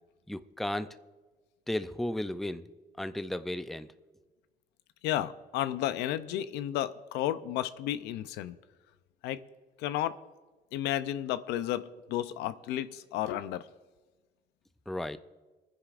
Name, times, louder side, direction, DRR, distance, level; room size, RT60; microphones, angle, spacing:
voice 1, 0.3-0.9 1.7-2.7 3.0-3.9 14.9-15.2, left 1 dB, ahead, 11 dB, 0.4 m, -34 dB
voice 2, 5.0-8.6 9.2-9.4 9.8-10.1 10.7-13.6, left 12 dB, 90° left, 13 dB, 0.5 m, -32 dB
27.0 x 9.9 x 2.5 m, 1.3 s
cardioid pair, 110°, 17 cm